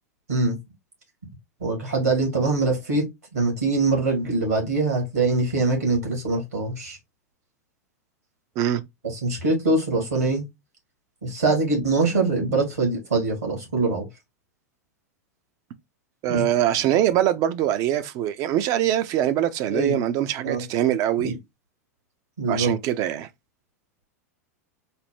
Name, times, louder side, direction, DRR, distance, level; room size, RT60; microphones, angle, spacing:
voice 1, 1.6-3.0 3.3-7.0 9.0-10.5 11.2-14.1 16.3-16.5 19.7-20.0 20.4-20.6 21.2-21.4 22.4-22.7, right 3 dB, 85° right, 2.1 m, -23 dB
voice 2, 16.2-21.3 22.5-23.3, right 11 dB, 40° right, 0.5 m, -23 dB
4.1 x 2.1 x 3.4 m
figure-of-eight pair, 90°, 8 cm